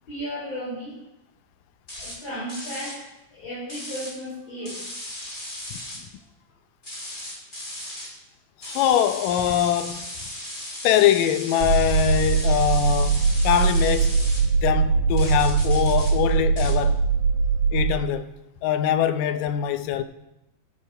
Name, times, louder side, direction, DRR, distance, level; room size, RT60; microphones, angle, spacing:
voice 1, 0.1-1.0 2.0-3.0 3.3-4.8, equal, 50° left, 5.8 m, -34 dB
sound 1, 1.9-2.2 2.5-3.0 3.7-4.1 4.6-6.0 6.8-8.1 8.6-14.4 15.2-16.1 16.6-16.7, left 1 dB, 20° left, 2.4 m, -36 dB
voice 2, 8.6-10.1 10.8-14.2 14.4-17.0 17.7-18.3 18.6-20.0, left 10 dB, 85° left, 2.3 m, -23 dB
sound 2, 11.6-17.9, right 5 dB, 90° right, 2.5 m, -21 dB
13.0 x 7.3 x 5.5 m
omnidirectional pair, 3.8 m